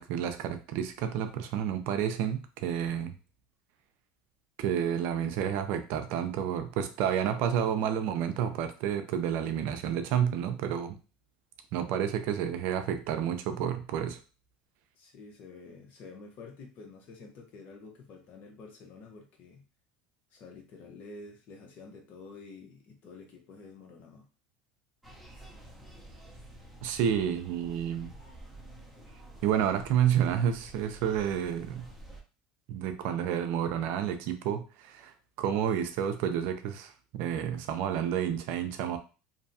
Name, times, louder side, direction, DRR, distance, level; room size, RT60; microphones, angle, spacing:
voice 1, 0.0-3.1 4.6-11.0 11.7-14.2 26.8-28.1 29.4-31.9 32.7-39.0, right 9 dB, 65° right, 8 dB, 0.4 m, -30 dB
voice 2, 14.9-19.6 20.3-24.3, left 3 dB, 50° left, 2 dB, 0.9 m, -49 dB
sound 1, 25.0-32.2, right 1 dB, ahead, 0.7 m, -50 dB
2.7 x 2.2 x 2.7 m, 0.33 s
supercardioid pair, 105°, 4 cm